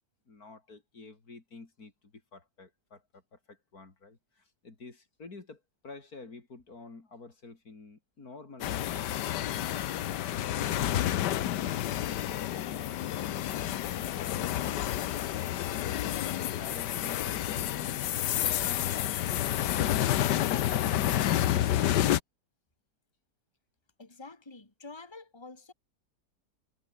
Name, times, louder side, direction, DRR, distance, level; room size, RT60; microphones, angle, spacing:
voice 1, 0.3-9.4 16.5-18.1 18.4-19.4, left 3 dB, 60° left, 3.8 m, -50 dB
sound 1, 8.6-22.2, left 12 dB, 85° left, 1.5 m, -29 dB
voice 2, 24.0-25.7, left 3 dB, 15° left, 2.4 m, -47 dB
omnidirectional pair, 1.8 m